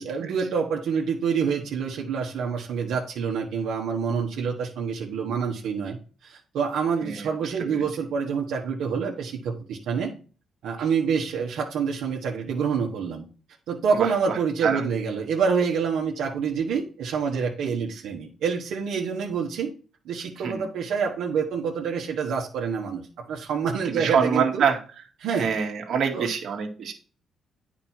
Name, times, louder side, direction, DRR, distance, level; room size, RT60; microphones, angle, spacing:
voice 1, 0.0-6.0 6.2-10.1 10.6-13.2 13.7-19.7 20.0-24.6 25.2-25.5 26.1-26.3, right 6 dB, 80° right, -2 dB, 1.4 m, -27 dB
voice 2, 7.0-7.8 14.0-14.8 20.4-20.5 23.9-24.8 25.3-26.9, right 6 dB, 65° right, 3 dB, 1.8 m, -26 dB
9.0 x 5.3 x 4.5 m, 0.37 s
cardioid pair, 90°, 0 cm